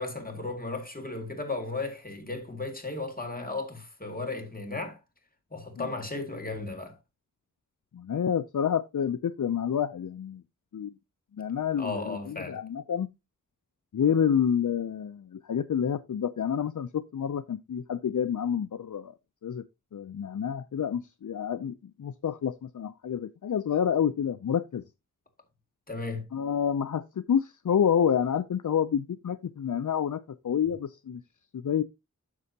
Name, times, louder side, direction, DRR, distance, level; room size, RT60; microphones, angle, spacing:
voice 1, 0.0-5.0 5.5-7.0 11.8-12.6 25.9-26.3, left 3 dB, 25° left, 2.1 m, -35 dB
voice 2, 7.9-10.4 10.7-10.9 11.4-13.1 13.9-19.1 19.4-19.6 19.9-24.8 26.3-31.2 31.5-31.8, left 8 dB, 70° left, 0.5 m, -28 dB
9.6 x 6.7 x 2.7 m
wide cardioid pair, 50°, 32 cm